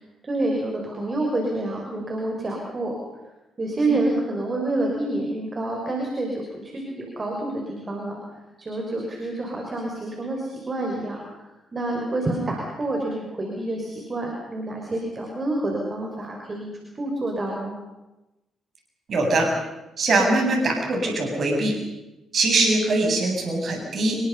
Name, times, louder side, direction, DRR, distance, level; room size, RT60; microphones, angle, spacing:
voice 1, 0.2-3.0 3.6-8.2 8.6-17.7, right 2 dB, 35° right, 1 dB, 6.0 m, -28 dB
voice 2, 19.1-19.5 20.0-21.8 22.3-24.2, right 2 dB, 50° right, 2 dB, 7.8 m, -22 dB
28.5 x 23.5 x 5.6 m, 0.98 s
figure-of-eight pair, 40°, 0 cm